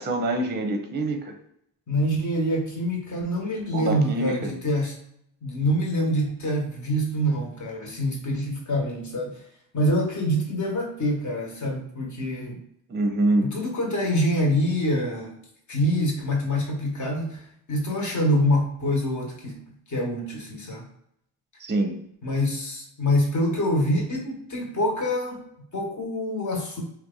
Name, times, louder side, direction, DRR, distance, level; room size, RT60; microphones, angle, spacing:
voice 1, 0.0-1.3 3.7-4.6 12.9-13.5 21.6-22.0, right 2 dB, 25° right, 4 dB, 0.7 m, -25 dB
voice 2, 1.9-5.0 5.4-9.4 9.7-12.6 13.4-15.4 15.7-17.4 17.7-20.9 22.2-26.8, equal, 40° left, 0 dB, 1.2 m, -25 dB
2.8 x 2.3 x 3.7 m, 0.73 s
cardioid pair, 65°, 44 cm